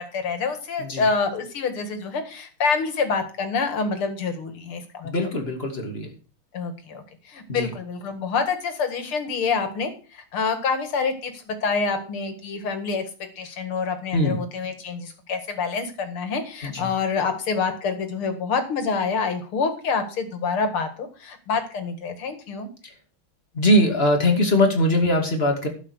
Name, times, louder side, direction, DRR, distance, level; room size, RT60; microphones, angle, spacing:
voice 1, 0.0-5.1 6.5-7.0 7.3-13.0 13.4-22.7, left 5 dB, 85° left, 8 dB, 2.8 m, -27 dB
voice 2, 5.0-6.1 7.5-7.7 14.1-14.4 16.6-16.9 23.5-25.7, left 1 dB, 30° left, 4 dB, 2.7 m, -21 dB
12.0 x 7.7 x 6.4 m, 0.37 s
omnidirectional pair, 2.3 m